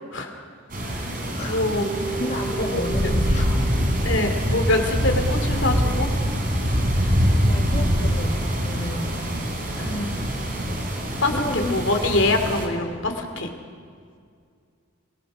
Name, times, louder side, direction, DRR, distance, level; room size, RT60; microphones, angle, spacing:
sound 1, 0.7-12.7, equal, 40° right, 3.4 m, -24 dB
voice 1, 1.4-1.9 2.7-2.8 4.0-6.1 9.8-10.1 11.2-13.5, left 2 dB, 60° left, 4 dB, 2.6 m, -24 dB
Keyboard (musical), 1.8-5.0, right 3 dB, 5° left, 7.8 m, -35 dB
voice 2, 2.2-3.9 4.4-4.5 7.4-9.5 11.3-11.8, left 1 dB, 30° left, -1 dB, 1.4 m, -32 dB
24.5 x 19.0 x 6.2 m, 2.2 s
head